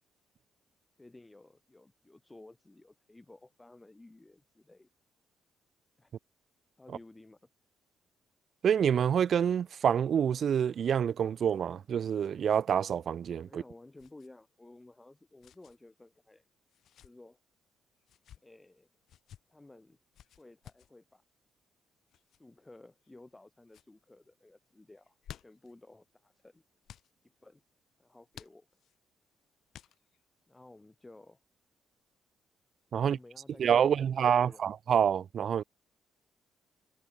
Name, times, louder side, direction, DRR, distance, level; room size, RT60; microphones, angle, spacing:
voice 1, 1.0-4.9 6.0-6.1 6.8-7.4 13.4-16.5 17.0-17.4 18.4-18.9 19.5-20.0 20.4-21.2 22.4-26.6 27.4-27.6 28.0-28.7 30.5-31.4 32.9-33.9 34.2-34.6, left 2 dB, 15° left, 1.1 m, -55 dB
voice 2, 8.6-13.6 32.9-33.2 33.6-35.6, right 8 dB, 55° right, 0.3 m, -27 dB
sound 1, 11.3-12.6 12.9-13.0 14.0-14.3 15.4-15.8 16.7-17.1 18.0-18.4 19.1-19.4 20.1-20.9 22.1-22.4 23.0-23.4 23.7-23.9 25.0-25.7 26.8-27.1 28.3-29.0 29.7-30.2, left 10 dB, 70° left, 2.0 m, -54 dB
cardioid pair, 90°, 0 cm